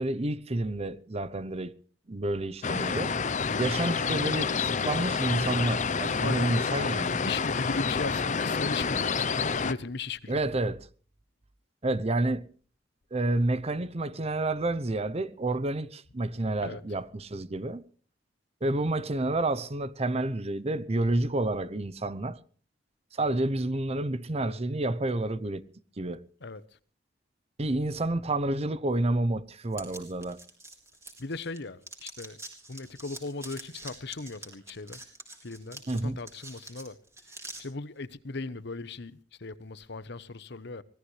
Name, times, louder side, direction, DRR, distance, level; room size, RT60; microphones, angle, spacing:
voice 1, 0.0-1.7 2.1-3.2 3.6-7.3 10.3-10.9 11.8-12.5 13.1-17.8 18.6-22.4 23.1-25.6 26.0-26.3 27.6-30.4 35.9-36.2, right 2 dB, 35° right, 0.8 m, -29 dB
sound 1, 2.6-9.7, left 5 dB, 40° left, 0.7 m, -28 dB
voice 2, 6.2-6.7 7.2-10.4 16.6-16.8 26.4-26.6 31.2-32.4 32.7-35.0 35.4-37.0 37.6-40.8, left 3 dB, 65° left, 1.0 m, -37 dB
sound 2, 29.7-31.6 31.8-37.6, right 2 dB, 15° right, 4.1 m, -45 dB
24.0 x 17.5 x 3.3 m
head